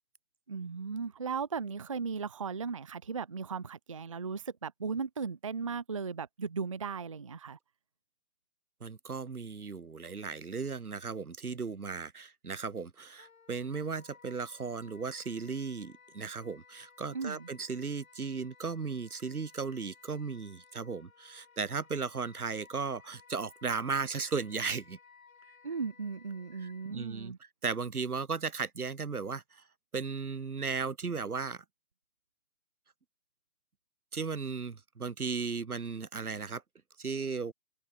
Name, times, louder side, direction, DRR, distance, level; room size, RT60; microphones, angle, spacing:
voice 1, 0.5-7.6 17.1-17.5 25.6-27.4, right 5 dB, 25° right, 0.5 m, -37 dB
voice 2, 8.8-25.0 26.6-27.3 27.6-29.6 29.9-31.6 34.1-36.6 37.0-37.5, right 5 dB, 90° right, 2.1 m, -36 dB
Wind instrument woodwind instrument, 13.2-27.0, left 6 dB, 70° left, 4.3 m, -59 dB
hypercardioid pair, 150°, 43 cm